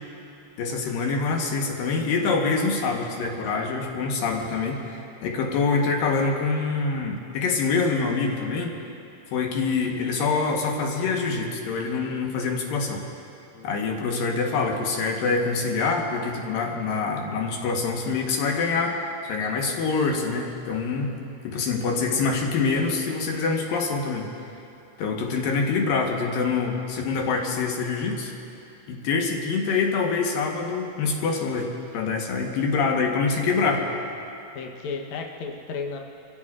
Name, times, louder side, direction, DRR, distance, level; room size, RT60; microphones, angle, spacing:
voice 1, 0.6-8.7 9.3-13.0 13.6-21.1 21.4-24.3 25.0-28.3 28.9-33.9, left 4 dB, 65° left, 1 dB, 2.6 m, -25 dB
voice 2, 13.5-13.8 33.5-34.0 34.5-36.0, left 4 dB, 85° left, 1 dB, 1.6 m, -35 dB
28.0 x 15.5 x 2.5 m, 2.7 s
omnidirectional pair, 4.9 m